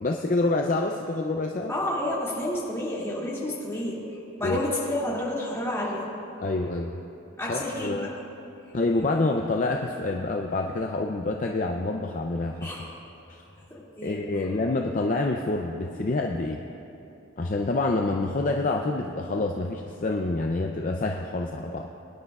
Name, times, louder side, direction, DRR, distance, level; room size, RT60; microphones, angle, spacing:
voice 1, 0.0-1.7 4.4-4.6 6.4-7.0 7.5-8.1 8.7-12.9 13.3-13.4 14.0-16.6 17.4-21.9, left 2 dB, 35° left, 2 dB, 0.4 m, -27 dB
voice 2, 1.7-4.0 4.4-6.1 7.4-8.1 12.6-12.9 13.7-14.2, left 1 dB, 15° left, -7 dB, 2.3 m, -30 dB
23.0 x 10.0 x 2.4 m, 2.9 s
head